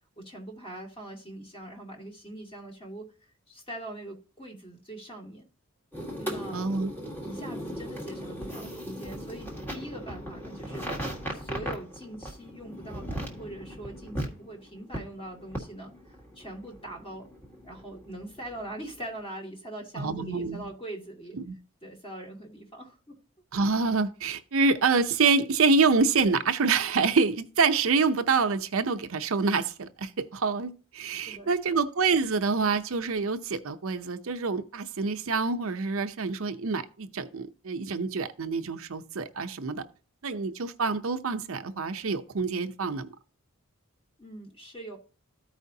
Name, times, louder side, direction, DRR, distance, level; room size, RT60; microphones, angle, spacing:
voice 1, 0.2-3.1 3.5-5.5 6.2-6.6 7.2-17.3 17.6-21.4 21.8-23.2 31.2-31.8 44.2-45.0, right 1 dB, 25° left, 2.2 m, -42 dB
sound 1, 5.9-19.1, equal, 10° left, 1.6 m, -38 dB
voice 2, 6.5-6.9 19.9-20.7 21.3-21.5 23.5-39.8 40.2-43.1, right 4 dB, 65° right, 0.6 m, -26 dB
14.0 x 4.9 x 2.7 m
head